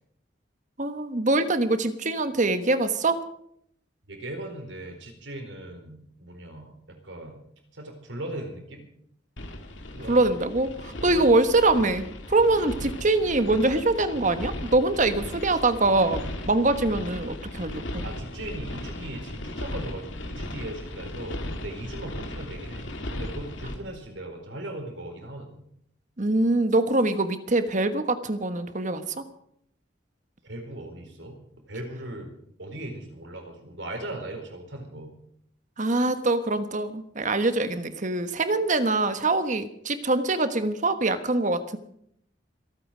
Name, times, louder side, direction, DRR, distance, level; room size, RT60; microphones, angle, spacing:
voice 1, 0.8-3.2 10.1-18.0 26.2-29.2 35.8-41.8, right 2 dB, 40° right, 10 dB, 1.3 m, -24 dB
voice 2, 4.1-7.4 7.7-8.8 9.9-10.2 11.1-11.2 18.0-25.6 30.4-32.3 32.6-35.2, right 1 dB, 85° right, 3 dB, 4.3 m, -38 dB
sound 1, 9.4-23.8, left 1 dB, 90° left, 2.4 m, -36 dB
26.5 x 9.0 x 5.1 m, 0.70 s
head